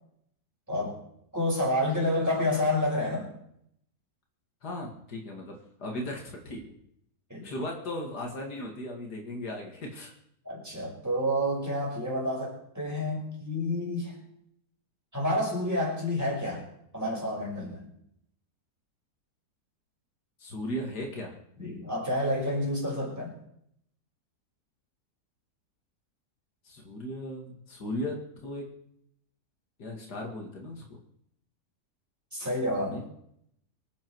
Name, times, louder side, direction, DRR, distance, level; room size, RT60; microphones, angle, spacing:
voice 1, 1.3-3.3 7.3-7.4 10.5-14.1 15.1-16.7 16.9-17.9 21.6-23.3 32.3-33.0, left 1 dB, 10° right, -3 dB, 5.9 m, -29 dB
voice 2, 4.6-6.7 7.4-10.1 20.4-21.3 26.6-28.7 29.8-30.8 32.9-33.0, left 1 dB, 90° left, 1 dB, 2.8 m, -37 dB
25.0 x 8.8 x 4.7 m, 0.71 s
omnidirectional pair, 1.7 m